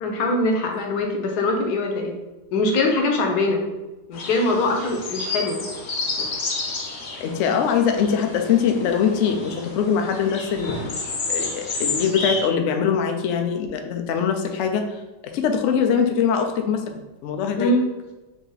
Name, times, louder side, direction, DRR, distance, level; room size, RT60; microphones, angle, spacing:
voice 1, 0.0-2.1 2.5-3.6 4.1-5.6 17.6-17.9, left 2 dB, 70° left, 2 dB, 1.2 m, -22 dB
sound 1, 4.1-12.4, left 3 dB, 50° left, 0.9 m, -30 dB
voice 2, 7.2-11.0 11.3-15.0 15.3-17.7, left 7 dB, 90° left, 5 dB, 0.6 m, -22 dB
4.0 x 2.8 x 3.9 m, 1.1 s
omnidirectional pair, 1.8 m